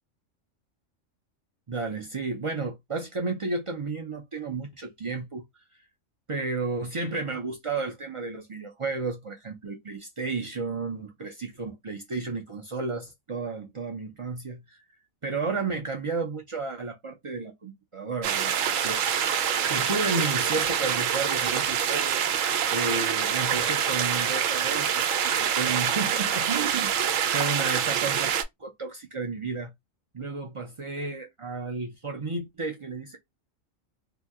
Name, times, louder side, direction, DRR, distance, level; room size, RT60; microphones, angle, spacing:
voice 1, 1.7-5.4 6.3-14.8 15.2-19.0 19.7-22.3 22.7-26.9 27.3-28.3 28.6-29.7 30.1-33.2, right 3 dB, 50° right, 0.3 m, -32 dB
sound 1, 18.2-28.4, right 8 dB, 80° right, 1.0 m, -26 dB
2.8 x 2.2 x 3.4 m
omnidirectional pair, 1.3 m